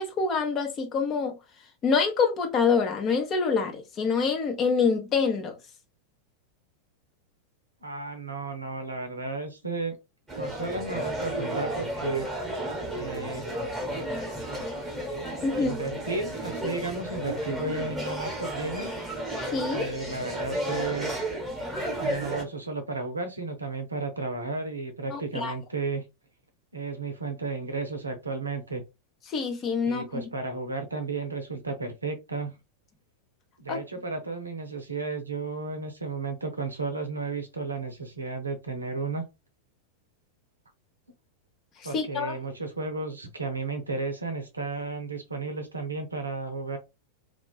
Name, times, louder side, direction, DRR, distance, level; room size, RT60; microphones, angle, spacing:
voice 1, 0.0-1.3 1.8-5.5 15.4-15.7 19.5-19.8 25.1-25.5 29.3-30.2 33.7-33.8 41.9-42.4, left 5 dB, 30° left, 0.6 m, -26 dB
voice 2, 7.8-10.0 10.4-12.3 12.9-13.4 15.5-18.9 19.7-21.2 22.0-26.0 26.7-28.8 29.9-32.5 33.6-39.3 41.8-46.8, right 3 dB, 80° right, 0.6 m, -33 dB
sound 1, 10.3-22.4, right 1 dB, 5° right, 1.0 m, -33 dB
2.4 x 2.2 x 2.3 m
figure-of-eight pair, 90°, 0 cm